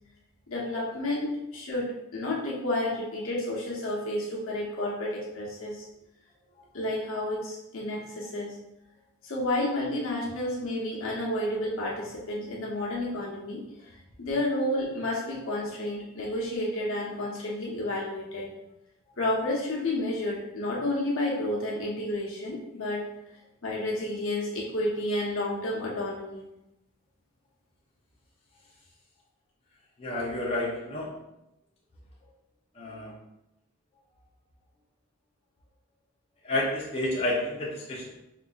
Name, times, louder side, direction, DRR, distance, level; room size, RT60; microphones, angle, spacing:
voice 1, 0.5-5.8 6.7-8.6 9.2-13.6 14.2-18.5 19.2-23.1 23.6-26.4, left 1 dB, 70° left, -4 dB, 0.9 m, -31 dB
voice 2, 30.0-31.1 32.8-33.1 36.4-38.1, left 1 dB, 25° left, -5 dB, 0.5 m, -30 dB
4.8 x 2.5 x 2.3 m, 0.89 s
head